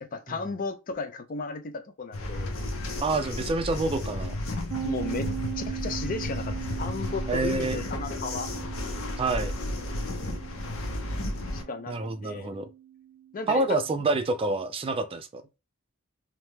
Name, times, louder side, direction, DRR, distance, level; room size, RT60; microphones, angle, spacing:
voice 1, 0.0-2.5 4.8-8.5 11.5-12.0 12.2-12.5 13.3-13.8, left 4 dB, 40° left, 0.4 m, -35 dB
sound 1, 2.1-11.6, left 1 dB, 80° left, 0.7 m, -33 dB
voice 2, 3.0-4.3 7.3-7.8 9.2-9.5 11.9-12.7 13.5-15.4, right 3 dB, 25° right, 0.3 m, -27 dB
sound 2, 4.7-14.2, right 11 dB, 80° right, 0.5 m, -40 dB
2.9 x 2.1 x 3.2 m
head